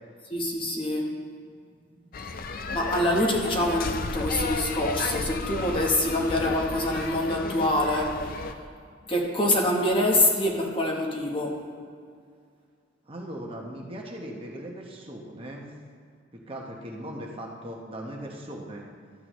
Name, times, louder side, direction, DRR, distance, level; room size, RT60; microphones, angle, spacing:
voice 1, 0.3-1.1 2.7-8.4 9.1-11.6, left 1 dB, 25° left, 0 dB, 1.0 m, -25 dB
sound 1, 2.1-8.5, left 3 dB, 45° left, 0.4 m, -33 dB
voice 2, 13.1-15.7 16.3-18.9, right 1 dB, 25° right, -1 dB, 0.9 m, -39 dB
12.5 x 8.2 x 3.1 m, 2.2 s
head